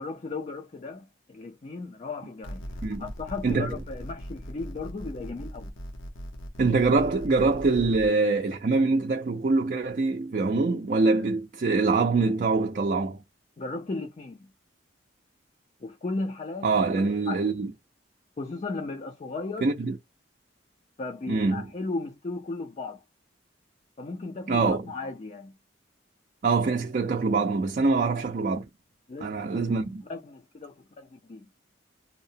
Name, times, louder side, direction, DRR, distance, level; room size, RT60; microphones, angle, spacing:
voice 1, 0.0-2.6 3.0-5.7 13.6-14.5 15.8-16.9 17.3-17.5 18.4-19.7 21.0-23.0 24.0-25.5 27.9-28.1 29.1-29.6 30.1-31.5, left 3 dB, 35° left, 0.4 m, -36 dB
sound 1, 2.4-8.1, equal, 85° left, 0.7 m, -40 dB
voice 2, 3.4-3.8 6.6-13.2 16.6-17.7 19.6-20.0 21.3-21.6 24.5-24.8 26.4-28.6 29.2-30.0, right 3 dB, 45° right, 0.4 m, -24 dB
2.7 x 2.0 x 2.7 m
head